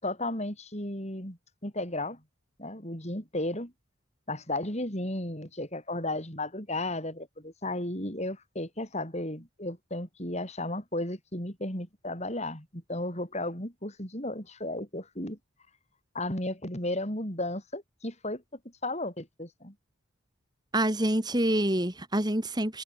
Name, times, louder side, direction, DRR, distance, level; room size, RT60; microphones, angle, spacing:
voice 1, 0.0-2.2 2.6-3.7 4.3-15.4 16.1-18.4 18.8-19.7, left 1 dB, 30° left, 6.9 m, -34 dB
voice 2, 20.7-22.8, right 1 dB, 20° right, 3.2 m, -26 dB
head